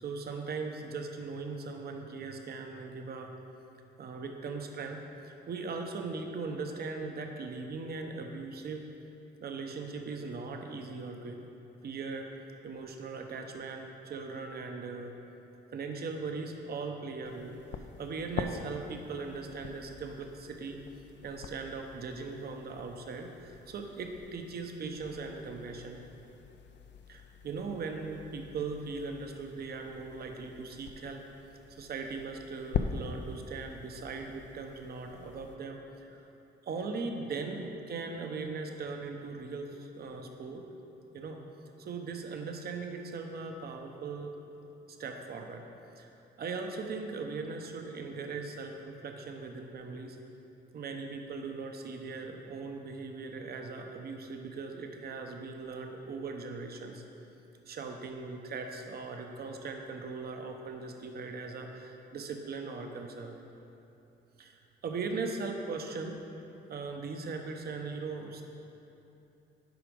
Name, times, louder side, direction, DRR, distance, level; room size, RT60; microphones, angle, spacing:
voice 1, 0.0-3.3 4.0-8.8 9.4-11.4 11.8-12.3 12.6-15.1 15.7-17.6 18.0-20.8 21.2-26.0 27.1-31.2 31.7-36.2 36.6-40.6 41.1-41.4 41.8-44.3 45.0-45.6 46.0-46.1 46.4-50.2 50.7-57.0 57.7-63.4 64.4-66.2 66.7-68.4, right 4 dB, 50° right, 4 dB, 0.8 m, -39 dB
sound 1, 17.2-35.6, left 7 dB, 65° left, 0.5 m, -43 dB
7.9 x 5.1 x 5.2 m, 2.9 s
cardioid pair, 90°, 20 cm